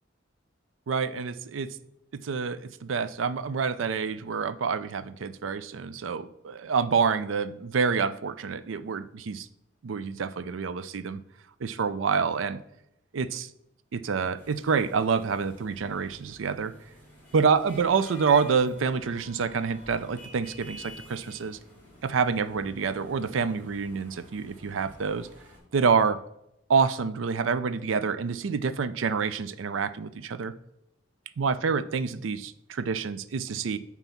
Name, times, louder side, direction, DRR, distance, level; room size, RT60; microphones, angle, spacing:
voice 1, 0.9-1.7 2.1-9.5 9.8-11.2 11.6-12.6 13.1-13.5 13.9-16.7 17.3-21.6 22.0-25.3 25.7-26.2 26.7-30.5 31.4-33.8, right 5 dB, 85° right, 14 dB, 0.4 m, -27 dB
sound 1, 14.4-25.6, left 1 dB, 10° left, 3.1 m, -50 dB
9.0 x 3.0 x 5.8 m, 0.81 s
head